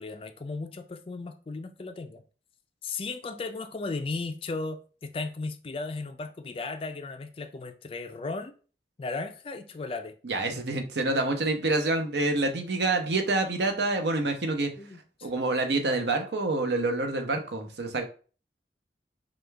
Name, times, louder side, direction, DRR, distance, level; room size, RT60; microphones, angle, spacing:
voice 1, 0.0-2.2 2.8-8.5 9.0-10.1 14.8-15.3, left 3 dB, 30° left, 0.4 m, -36 dB
voice 2, 10.2-14.7 15.2-18.0, right 2 dB, 75° right, 0.8 m, -27 dB
5.0 x 2.3 x 3.3 m
head